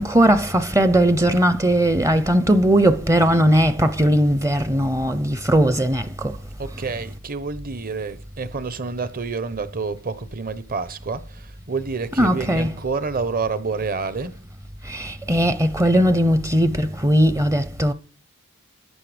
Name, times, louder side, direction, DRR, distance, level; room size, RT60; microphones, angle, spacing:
voice 1, 0.0-6.4 12.2-12.8 14.8-17.9, right 1 dB, 15° right, 0.7 m, -18 dB
voice 2, 6.6-14.4, right 4 dB, 40° right, 1.1 m, -28 dB
15.0 x 10.5 x 5.1 m
head